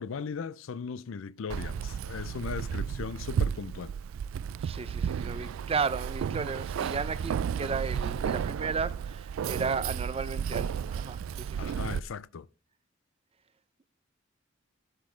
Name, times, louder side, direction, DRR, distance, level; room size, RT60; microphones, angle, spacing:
voice 1, 0.0-3.9 11.6-12.5, left 5 dB, 75° left, 0.4 m, -38 dB
Keys jangling, 1.5-12.0, right 7 dB, 85° right, 0.3 m, -33 dB
voice 2, 4.6-11.7, right 5 dB, 30° right, 0.5 m, -34 dB
11.5 x 6.3 x 3.2 m
head